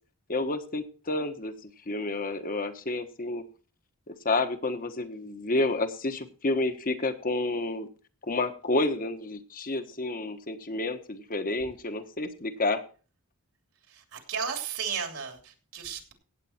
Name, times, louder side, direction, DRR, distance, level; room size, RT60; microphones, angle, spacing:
voice 1, 0.3-3.4 4.1-7.9 8.2-12.8, left 2 dB, 40° left, 9 dB, 1.3 m, -30 dB
voice 2, 13.9-16.1, right 7 dB, 75° right, 4 dB, 3.0 m, -34 dB
16.5 x 8.4 x 4.4 m, 0.38 s
head